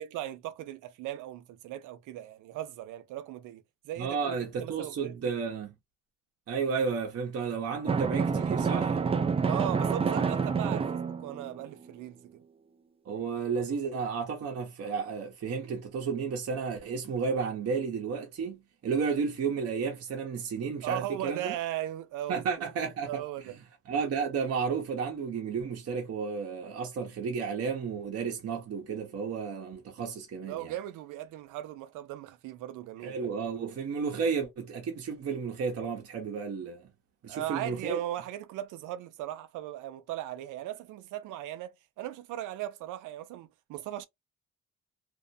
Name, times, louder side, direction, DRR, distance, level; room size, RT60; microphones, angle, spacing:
voice 1, 0.0-5.2 9.4-12.2 20.8-22.4 23.0-23.6 30.4-33.3 37.3-44.1, right 13 dB, 90° right, 0.5 m, -38 dB
voice 2, 4.0-5.7 6.5-9.0 10.6-10.8 13.0-21.5 22.3-23.2 23.9-30.7 33.0-36.9 37.2-38.0, right 5 dB, 55° right, 0.8 m, -32 dB
Drum, 7.9-11.6, right 5 dB, 20° right, 0.3 m, -28 dB
2.5 x 2.1 x 2.5 m
cardioid pair, 90°, 30 cm